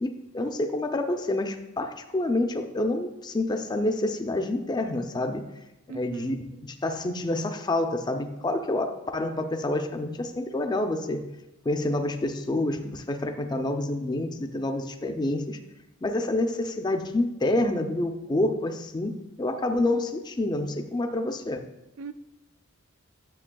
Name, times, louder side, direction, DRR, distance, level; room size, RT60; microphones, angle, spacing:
voice 1, 0.0-5.4 5.9-11.2 11.7-15.6 16.0-21.6, left 2 dB, 20° left, 6 dB, 0.4 m, -28 dB
voice 2, 5.9-6.4 22.0-22.1, right 5 dB, 80° right, 12 dB, 0.4 m, -39 dB
9.9 x 6.7 x 2.2 m, 0.95 s
head